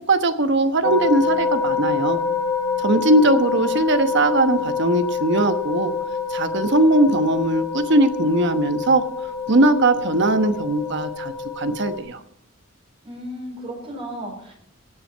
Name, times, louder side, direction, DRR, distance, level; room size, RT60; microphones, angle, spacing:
voice 1, 0.1-2.2 2.8-5.9 6.3-9.0 9.5-12.2, right 2 dB, 60° right, 8 dB, 1.1 m, -19 dB
sound 1, 0.8-12.0, left 5 dB, 20° left, 1.2 m, -26 dB
voice 2, 13.0-14.5, equal, 30° right, -1 dB, 4.7 m, -34 dB
18.0 x 7.4 x 5.5 m, 0.72 s
head